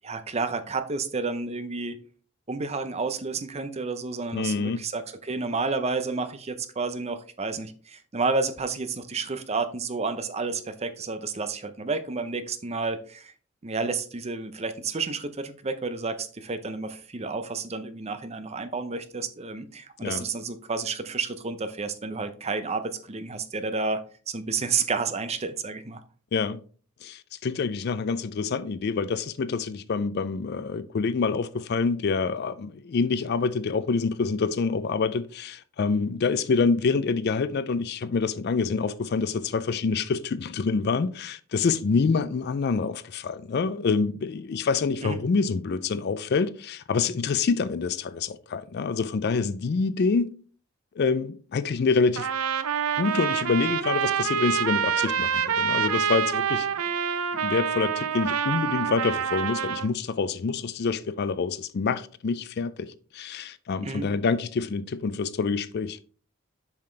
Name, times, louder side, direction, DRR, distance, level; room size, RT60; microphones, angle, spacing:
voice 1, 0.0-2.0 2.5-13.3 13.6-26.0 45.0-45.2 63.8-64.1, right 4 dB, 30° right, 0.6 m, -30 dB
voice 2, 4.3-4.9 20.0-20.2 26.3-26.6 27.0-50.3 51.0-52.3 53.0-56.7 57.4-66.0, left 4 dB, 50° left, 0.4 m, -26 dB
Trumpet, 52.2-59.9, right 7 dB, 80° right, 0.5 m, -26 dB
7.2 x 5.8 x 3.3 m
head